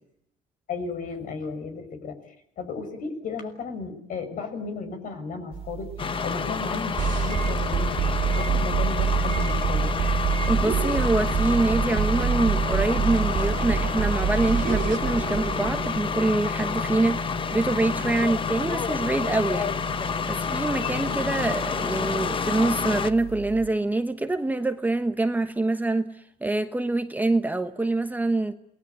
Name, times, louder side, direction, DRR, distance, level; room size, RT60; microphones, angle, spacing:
voice 1, 0.7-2.2 2.6-5.9 6.2-7.0 7.2-8.1 8.3-9.9, left 4 dB, 55° left, 6.2 m, -34 dB
sound 1, 5.5-23.7, right 11 dB, 35° right, 3.1 m, -40 dB
sound 2, 6.0-23.1, left 6 dB, 30° left, 1.2 m, -29 dB
sound 3, 7.0-16.0, right 7 dB, 50° right, 2.8 m, -26 dB
voice 2, 10.5-19.7 20.0-28.5, right 2 dB, 10° right, 1.2 m, -25 dB
28.0 x 20.0 x 9.5 m
cardioid pair, 120°, 17 cm